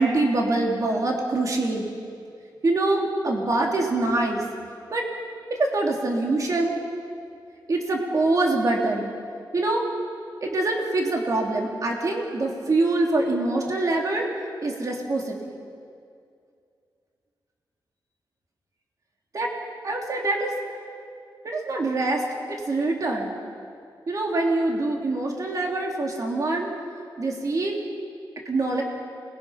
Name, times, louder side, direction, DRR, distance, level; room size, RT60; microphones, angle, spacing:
voice 1, 0.0-1.9 2.6-4.4 4.9-5.1 5.5-6.8 7.7-9.1 9.5-9.8 10.4-14.3 14.6-15.6 19.3-19.5 19.8-20.5 21.4-23.4 24.1-26.7 27.2-27.8 28.4-28.8, right 2 dB, 45° right, 0 dB, 3.1 m, -24 dB
29.0 x 21.5 x 5.9 m, 2.3 s
wide cardioid pair, 125°, 8 cm